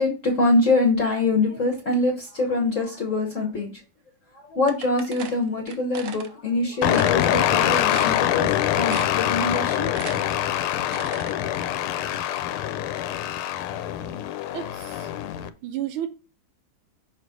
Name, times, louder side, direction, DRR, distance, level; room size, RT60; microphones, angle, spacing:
voice 1, 0.0-3.7 4.3-9.9 14.1-14.2, left 2 dB, 45° left, -1 dB, 1.2 m, -24 dB
sound 1, 4.7-6.3 6.8-7.2 7.6-7.7 7.9-8.5 8.9-9.3 9.6-11.3, right 6 dB, 60° right, 0.9 m, -37 dB
sound 2, 6.8-15.5, left 12 dB, 85° left, 1.5 m, -24 dB
voice 2, 14.5-15.1 15.6-16.1, right 12 dB, 80° right, 7 dB, 1.7 m, -31 dB
6.3 x 3.3 x 5.0 m, 0.33 s
omnidirectional pair, 2.3 m